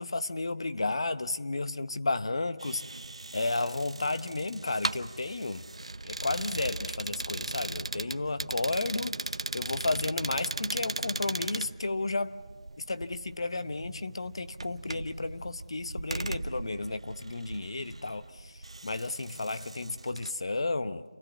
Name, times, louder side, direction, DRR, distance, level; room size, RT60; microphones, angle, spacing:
voice 1, 0.0-2.8 3.3-5.6 6.0-12.4 12.8-21.0, left 2 dB, 55° left, 0.8 m, -33 dB
sound 1, 2.6-20.3, right 2 dB, 65° right, 0.8 m, -38 dB
28.5 x 15.0 x 8.3 m
figure-of-eight pair, 170°, 3 cm